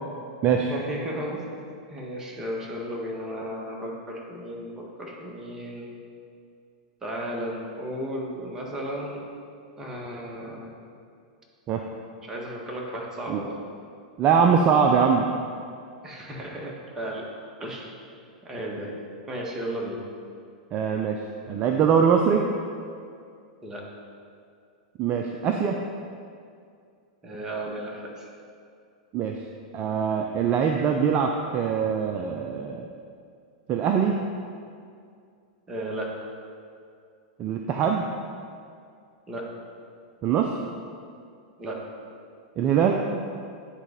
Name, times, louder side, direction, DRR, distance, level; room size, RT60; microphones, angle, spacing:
voice 1, 0.7-1.4 1.9-5.9 7.0-9.2 9.8-10.7 12.2-13.6 16.0-17.2 17.6-17.9 18.4-18.9 19.3-20.0 23.6-23.8 27.2-28.3 35.7-36.1 39.3-39.4 41.6-41.8, right 1 dB, 15° right, -2 dB, 1.6 m, -34 dB
voice 2, 14.2-15.3 20.7-21.2 21.5-22.4 25.0-25.8 29.1-29.4 29.7-32.9 33.7-34.2 37.4-38.1 40.2-40.5 42.6-43.0, right 7 dB, 35° right, 3 dB, 0.5 m, -22 dB
9.9 x 4.0 x 5.2 m, 2.3 s
hypercardioid pair, 100°, 4 cm